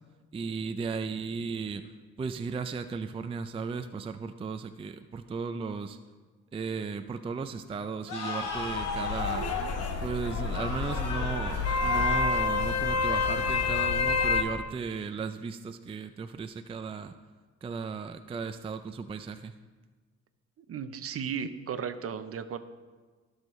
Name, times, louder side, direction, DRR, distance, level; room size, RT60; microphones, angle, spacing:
voice 1, 0.3-1.8 2.2-6.0 6.5-9.5 10.0-17.2 17.6-19.5, right 5 dB, 20° right, 9 dB, 0.4 m, -35 dB
sound 1, 8.1-14.5, left 4 dB, 90° left, 1.5 m, -37 dB
sound 2, 8.4-14.4, left 4 dB, 55° left, 1.0 m, -28 dB
voice 2, 20.7-22.6, right 7 dB, 50° right, 11 dB, 0.7 m, -35 dB
17.0 x 6.4 x 3.1 m, 1.4 s
cardioid pair, 90°, 30 cm